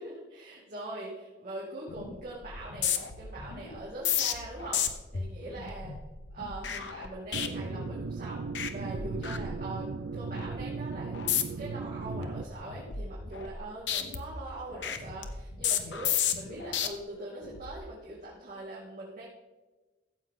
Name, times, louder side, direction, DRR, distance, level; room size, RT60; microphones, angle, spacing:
voice 1, 0.0-4.8 5.1-5.9 6.3-19.3, right 2 dB, 50° right, -8 dB, 2.8 m, -42 dB
sound 1, 1.9-2.2 2.4-8.2 8.5-8.7 9.0-9.9 10.3-10.6 11.1-11.7 12.1-13.6 13.9-16.9 17.4-17.7, left 8 dB, 85° left, 0.9 m, -33 dB
sound 2, 7.3-12.4, right 4 dB, 75° right, 0.4 m, -37 dB
14.5 x 7.8 x 3.8 m, 1.2 s
head